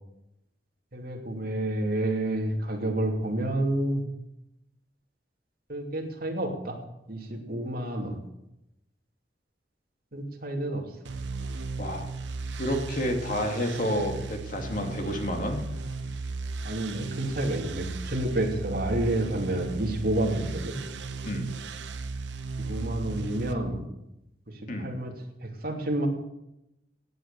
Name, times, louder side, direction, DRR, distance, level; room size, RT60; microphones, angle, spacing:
voice 1, 0.9-4.0 5.7-6.8 7.1-8.2 10.1-10.9 16.6-20.8 22.6-23.8 24.5-25.1 25.4-26.1, right 1 dB, 55° right, 1 dB, 2.8 m, -29 dB
sound 1, 11.0-23.5, right 3 dB, 85° right, 1.1 m, -36 dB
voice 2, 12.6-15.7 21.2-21.5 24.7-24.9, equal, 50° left, 3 dB, 2.5 m, -30 dB
16.5 x 9.3 x 6.7 m, 0.87 s
head